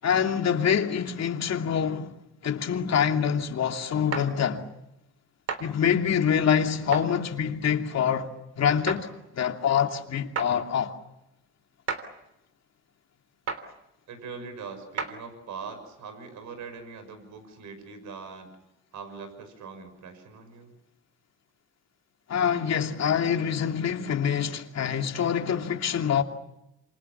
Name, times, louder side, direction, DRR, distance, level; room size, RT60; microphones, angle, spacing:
voice 1, 0.0-2.1 2.4-4.7 5.6-8.3 8.6-9.1 9.4-10.9 22.3-26.2, left 8 dB, 60° left, 2.8 m, -25 dB
sound 1, 4.1-4.3 5.5-5.6 6.9-7.1 8.9-9.0 10.4-10.5 11.9-12.0 13.5-13.6 15.0-15.1, right 5 dB, 55° right, 3.5 m, -31 dB
voice 2, 14.1-18.5 18.9-20.7 24.6-24.7, right 5 dB, 75° right, 6.2 m, -42 dB
27.5 x 27.5 x 7.2 m
cardioid pair, 90°, 30 cm